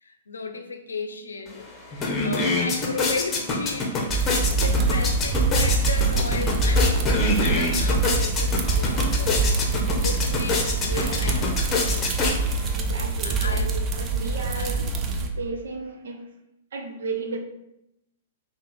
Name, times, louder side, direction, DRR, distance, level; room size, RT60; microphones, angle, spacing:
voice 1, 0.0-9.4 9.9-11.6 13.2-13.8 14.6-14.9, left 4 dB, 90° left, 7 dB, 0.5 m, -35 dB
sound 1, 1.5-1.6 1.9-12.8, left 3 dB, 25° left, 0.9 m, -26 dB
sound 2, 4.1-15.3, right 3 dB, 30° right, 0.6 m, -24 dB
voice 2, 10.8-11.3 12.7-14.8 15.2-16.2 16.7-17.4, right 4 dB, 75° right, 3 dB, 0.8 m, -34 dB
5.2 x 2.4 x 3.3 m, 0.85 s
hypercardioid pair, 115°, 0 cm